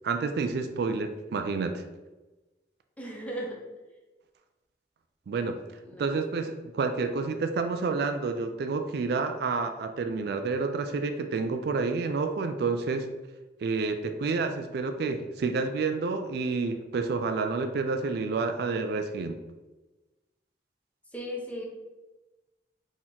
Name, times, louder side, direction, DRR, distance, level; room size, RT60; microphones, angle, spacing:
voice 1, 0.0-1.8 5.3-5.6 6.0-13.1 13.6-19.4, right 4 dB, 60° right, 7 dB, 0.3 m, -29 dB
voice 2, 3.0-3.6 5.8-6.2 21.1-21.6, equal, 10° left, -1 dB, 0.7 m, -36 dB
4.2 x 2.9 x 3.7 m, 1.1 s
head